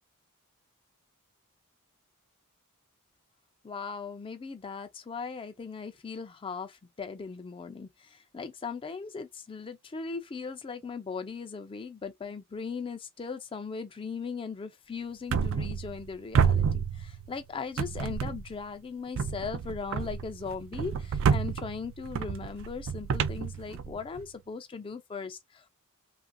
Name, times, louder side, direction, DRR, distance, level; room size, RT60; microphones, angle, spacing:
voice 1, 3.6-25.7, left 5 dB, 25° left, 0.3 m, -38 dB
sound 1, 15.3-16.1 16.3-17.4 17.8-18.6 19.1-24.2, right 6 dB, 60° right, 0.3 m, -29 dB
2.9 x 2.5 x 2.5 m
head